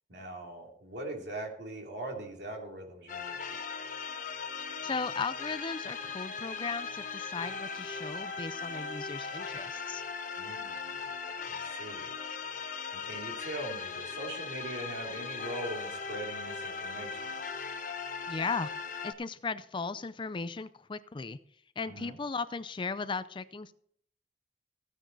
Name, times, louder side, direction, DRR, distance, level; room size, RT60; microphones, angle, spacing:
voice 1, 0.1-3.4 10.4-11.1 11.5-12.1 13.0-17.4 21.8-22.2, right 1 dB, 75° right, 1 dB, 3.0 m, -41 dB
sound 1, 3.1-19.1, left 5 dB, 50° left, 1.1 m, -39 dB
voice 2, 4.8-10.0 18.3-18.7 19.0-21.4 21.8-23.7, left 4 dB, 30° left, 14 dB, 0.4 m, -36 dB
15.0 x 9.1 x 4.0 m, 0.65 s
head